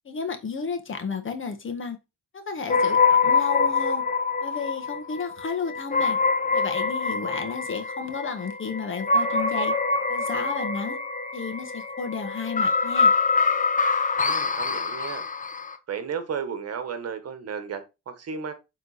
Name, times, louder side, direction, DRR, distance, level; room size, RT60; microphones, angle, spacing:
voice 1, 0.1-2.0 2.3-4.0 4.4-6.2 6.5-9.7 10.1-11.0 11.3-13.1, left 5 dB, 40° left, 1.7 m, -32 dB
sound 1, 2.7-15.8, left 4 dB, 25° left, 1.0 m, -25 dB
voice 2, 14.1-15.2 15.9-18.5, right 6 dB, 55° right, 1.4 m, -34 dB
7.9 x 3.9 x 4.2 m
cardioid pair, 90°, 30 cm